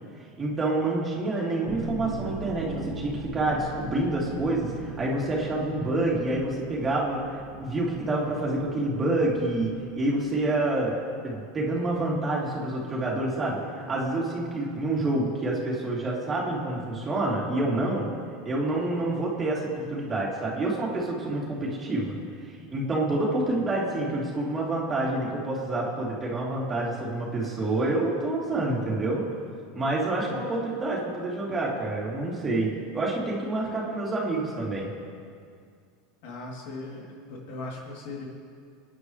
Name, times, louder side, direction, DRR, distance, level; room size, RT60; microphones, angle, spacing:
voice 1, 0.4-10.9 11.2-18.1 18.4-22.1 22.7-29.2 29.7-34.9, right 2 dB, 25° right, -4 dB, 3.4 m, -28 dB
sound 1, 1.6-10.6, right 3 dB, 45° right, 2.2 m, -40 dB
voice 2, 36.2-38.3, left 2 dB, 70° left, -2 dB, 3.2 m, -38 dB
25.5 x 9.9 x 3.3 m, 2.2 s
supercardioid pair, 110°, 0 cm